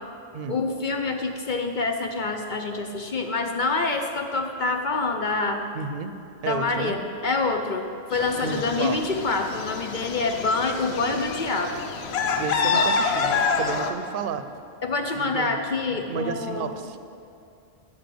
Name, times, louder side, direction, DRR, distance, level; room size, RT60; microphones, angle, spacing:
voice 1, 0.5-5.6 6.4-11.8 14.8-16.7, left 3 dB, 55° left, 5 dB, 0.8 m, -26 dB
voice 2, 5.7-6.2 6.4-7.0 8.4-9.0 12.3-14.5 15.2-15.6 15.9-17.0, right 6 dB, 60° right, 10 dB, 0.7 m, -32 dB
sound 1, 8.1-13.9, left 5 dB, 80° left, 1.0 m, -27 dB
10.0 x 6.2 x 7.7 m, 2.6 s
omnidirectional pair, 1.0 m